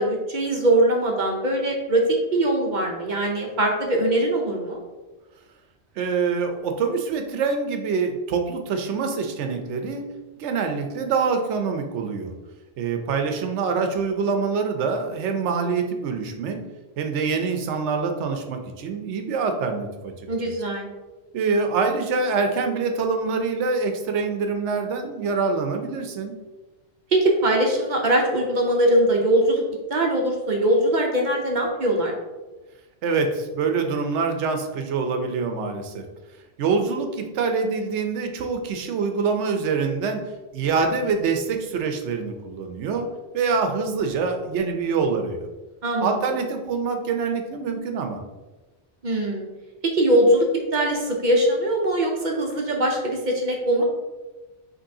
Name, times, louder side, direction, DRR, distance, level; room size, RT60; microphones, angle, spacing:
voice 1, 0.0-2.0 2.3-4.8 20.3-20.9 27.1-29.6 29.9-32.1 45.8-46.2 49.0-49.5 49.8-53.8, right 1 dB, 50° right, 0 dB, 0.7 m, -21 dB
voice 2, 6.0-10.0 10.4-12.3 12.8-16.6 17.0-20.1 21.3-26.3 33.0-36.0 36.6-40.2 40.5-43.1 43.3-45.5 46.0-48.2, right 5 dB, 85° right, 5 dB, 0.9 m, -25 dB
5.3 x 3.2 x 2.7 m, 1.2 s
omnidirectional pair, 1.2 m